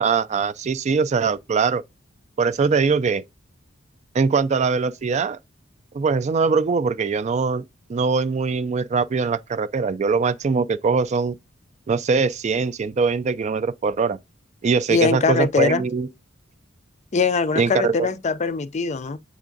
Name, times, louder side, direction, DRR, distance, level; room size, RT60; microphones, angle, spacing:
voice 1, 0.0-1.8 2.4-3.2 4.1-5.4 5.9-7.6 7.9-11.4 11.9-14.2 14.6-16.1 17.6-18.1, right 5 dB, 35° right, 0.3 m, -22 dB
voice 2, 14.9-15.8 17.1-19.2, left 4 dB, 35° left, 0.5 m, -22 dB
7.5 x 3.5 x 3.8 m
head